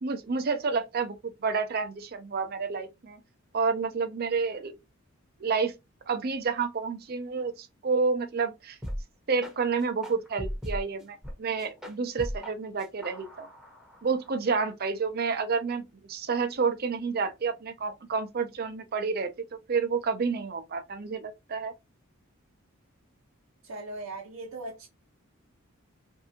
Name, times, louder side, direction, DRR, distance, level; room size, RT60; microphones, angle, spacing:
voice 1, 0.0-3.2 3.5-4.7 5.4-5.7 6.1-8.8 9.3-13.5 14.0-19.3 19.7-21.7, right 5 dB, 50° right, 0.5 m, -29 dB
sound 1, 8.8-9.0 9.4-9.5 10.0-11.3 11.6-12.5 12.8-14.3, equal, 5° right, 0.8 m, -37 dB
voice 2, 23.6-24.9, right 2 dB, 85° right, 0.7 m, -39 dB
3.3 x 2.6 x 2.7 m
head